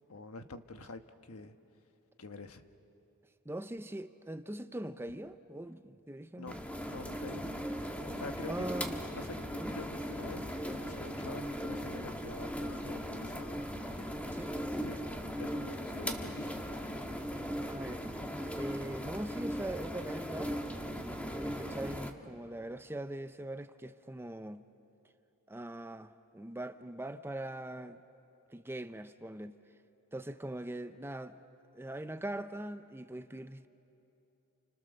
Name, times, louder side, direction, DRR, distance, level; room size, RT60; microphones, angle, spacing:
voice 1, 0.1-1.5 2.2-2.6 6.4-7.4 8.1-8.7 9.2-13.6 13.9-14.1 14.8-15.1 15.4-16.5 16.8-16.9, left 3 dB, 75° left, 1.3 m, -46 dB
voice 2, 3.4-6.6 8.5-9.0 9.6-9.8 13.9-14.6 15.2-15.3 17.7-18.1 18.5-20.5 21.0-24.6 25.5-28.0 28.5-29.6 30.1-31.4 31.7-33.7, right 1 dB, 10° right, 0.6 m, -41 dB
sound 1, 6.5-22.1, equal, 5° left, 1.4 m, -38 dB
29.5 x 29.5 x 6.7 m
head